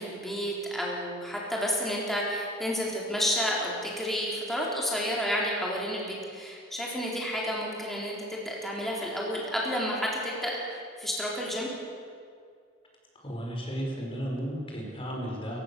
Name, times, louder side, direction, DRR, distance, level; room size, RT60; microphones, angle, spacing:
voice 1, 0.0-11.7, equal, ahead, -4 dB, 3.9 m, -31 dB
voice 2, 13.1-15.6, equal, 30° left, -1 dB, 5.0 m, -34 dB
27.5 x 15.5 x 7.0 m, 2.3 s
head